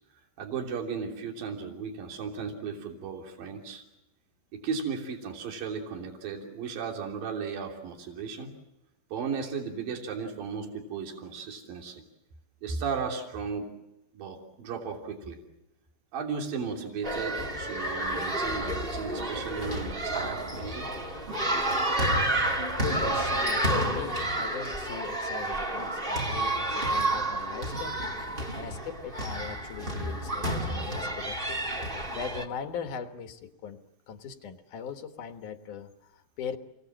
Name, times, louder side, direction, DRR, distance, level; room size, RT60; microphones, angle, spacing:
voice 1, 0.4-3.8 4.5-8.5 9.1-12.0 12.6-13.6 14.1-15.4 16.1-20.9, right 5 dB, 60° right, 1 dB, 4.8 m, -35 dB
sound 1, 17.0-32.4, right 1 dB, 20° right, 1.7 m, -30 dB
voice 2, 22.7-28.0 28.5-31.6 32.1-36.6, left 7 dB, 65° left, 6 dB, 2.4 m, -39 dB
29.0 x 22.5 x 7.5 m, 0.89 s
omnidirectional pair, 4.6 m